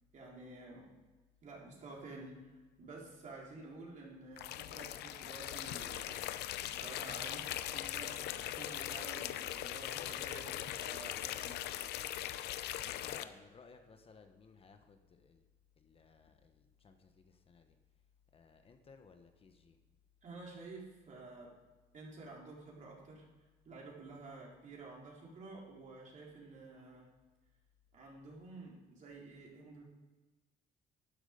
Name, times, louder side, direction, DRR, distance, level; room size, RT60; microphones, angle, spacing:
voice 1, 0.1-0.9 1.4-2.5 2.8-6.3 6.6-11.6 20.2-21.5 21.9-23.2 23.6-27.1 27.9-29.8, right 3 dB, 45° right, -3 dB, 3.9 m, -51 dB
sound 1, 4.4-13.2, left 13 dB, 80° left, 0.7 m, -40 dB
voice 2, 12.8-15.4 15.8-17.8 18.3-19.8, left 4 dB, 35° left, 6 dB, 1.1 m, -59 dB
12.0 x 9.6 x 5.1 m, 1.3 s
cardioid pair, 110°, 17 cm